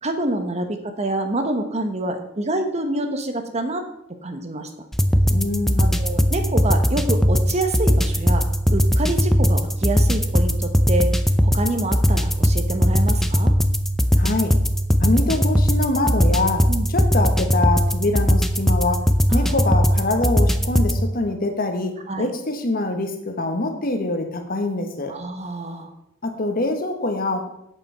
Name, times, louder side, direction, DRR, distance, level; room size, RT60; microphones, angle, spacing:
voice 1, 0.0-3.8 4.2-4.9 5.8-8.5 8.7-11.1 11.4-13.5 16.7-16.9 19.3-19.6 22.1-22.3 25.1-25.9, right 2 dB, 35° right, 6 dB, 1.1 m, -27 dB
sound 1, 4.9-21.0, equal, ahead, 0.5 m, -19 dB
voice 2, 5.3-6.0 14.2-14.6 15.0-19.0 19.3-21.9 22.2-25.1 26.2-27.5, left 2 dB, 50° left, 5 dB, 1.3 m, -24 dB
8.1 x 7.1 x 5.6 m, 0.79 s
head